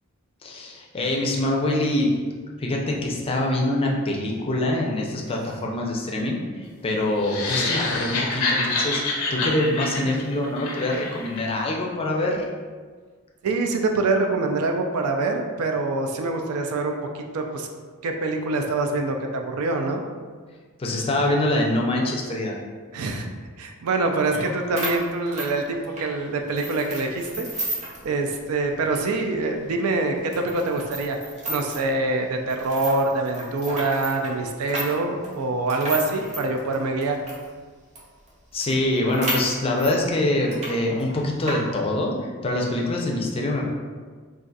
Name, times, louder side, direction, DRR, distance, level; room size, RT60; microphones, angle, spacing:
voice 1, 0.4-2.1 2.6-12.5 20.8-22.6 24.3-24.4 38.5-43.6, left 1 dB, 25° left, -1 dB, 0.4 m, -25 dB
sound 1, 7.2-11.4, left 3 dB, 90° left, 0.5 m, -26 dB
voice 2, 13.4-17.7 18.0-20.0 22.9-23.3 23.6-27.7 28.0-31.2 31.5-37.2, right 3 dB, 80° right, 3 dB, 0.4 m, -25 dB
sound 2, 24.4-24.5 24.8-26.1 26.6-28.0 28.4-28.5 28.9-29.0 29.6-29.7 30.3-31.9 32.5-37.5 38.0-38.1 38.3-38.4 38.6-40.0 40.4-40.7 41.0-41.6, right 1 dB, 30° right, 0.6 m, -32 dB
2.4 x 2.4 x 3.9 m, 1.5 s
head